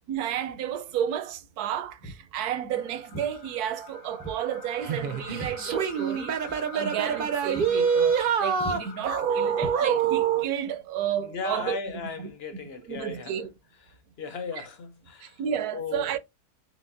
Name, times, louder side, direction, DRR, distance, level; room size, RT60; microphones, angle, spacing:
voice 1, 0.1-6.4 6.7-11.8 12.2-12.3 12.9-13.5 15.2-16.2, right 9 dB, 80° right, 1.1 m, -32 dB
Walk footsteps, 2.0-2.3 3.1-3.3 4.2-4.4 4.7-6.2 6.5-6.7 7.1-7.2 7.5-7.8 8.1-8.3 8.6-8.8 9.6-10.3, right 3 dB, 20° left, 0.4 m, -40 dB
sound 1, 2.7-10.1, left 7 dB, 85° left, 1.6 m, -45 dB
sound 2, 4.8-10.5, right 7 dB, 65° right, 0.5 m, -26 dB
voice 2, 11.2-13.4 13.9-15.4 15.7-16.1, left 5 dB, 65° left, 0.6 m, -36 dB
4.6 x 3.9 x 2.6 m
omnidirectional pair, 1.6 m